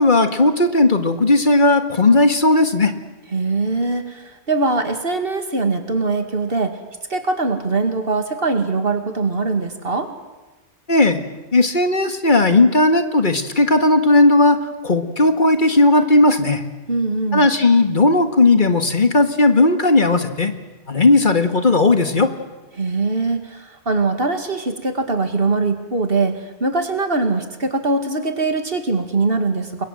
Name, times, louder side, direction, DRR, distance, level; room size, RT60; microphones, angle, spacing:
voice 1, 0.0-2.9 10.9-11.2 11.5-14.6 14.8-16.6 17.3-20.5 20.9-22.3, left 2 dB, 45° left, 8 dB, 1.9 m, -15 dB
voice 2, 3.3-6.8 7.1-10.1 16.9-17.5 22.8-29.8, right 3 dB, 55° right, 7 dB, 2.5 m, -22 dB
29.5 x 22.5 x 7.7 m, 1.2 s
omnidirectional pair, 1.1 m